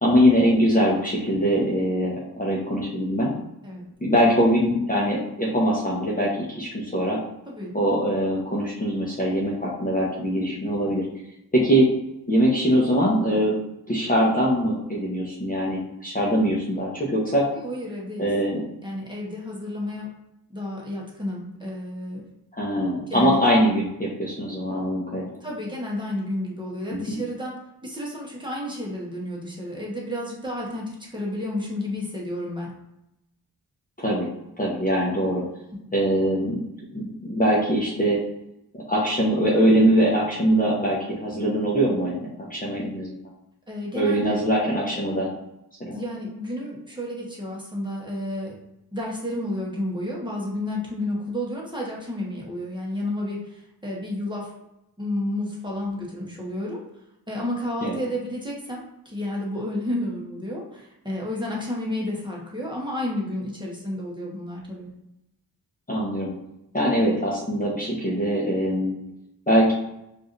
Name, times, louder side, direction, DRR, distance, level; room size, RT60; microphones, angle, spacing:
voice 1, 0.0-3.3 4.0-7.2 7.7-11.0 11.5-11.9 12.3-13.6 13.9-17.5 18.2-18.6 22.5-25.4 26.9-27.2 34.0-34.3 34.6-35.4 35.9-36.6 36.9-38.2 38.7-43.2 43.9-45.3 45.8-46.0 57.8-58.0 65.9-66.3 66.7-68.9 69.5-69.7, equal, 20° left, -5 dB, 0.9 m, -22 dB
voice 2, 7.5-7.8 17.5-18.3 18.8-20.1 20.5-22.2 23.1-23.4 25.4-32.7 43.7-44.4 45.9-48.6 48.9-54.5 55.0-56.8 57.3-64.9, left 1 dB, 10° right, -4 dB, 1.2 m, -31 dB
4.7 x 2.6 x 2.6 m, 0.86 s
wide cardioid pair, 80°, 40 cm